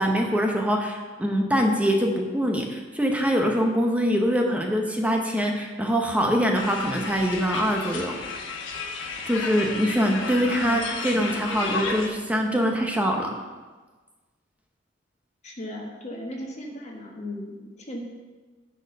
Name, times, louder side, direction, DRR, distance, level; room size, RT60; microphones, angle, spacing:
voice 1, 0.0-8.4 9.2-13.3, equal, 5° right, 1 dB, 0.8 m, -24 dB
sound 1, 6.5-12.1, left 4 dB, 75° left, 1.1 m, -33 dB
voice 2, 15.4-18.0, left 1 dB, 40° left, 0 dB, 1.4 m, -36 dB
9.9 x 4.4 x 6.5 m, 1.3 s
head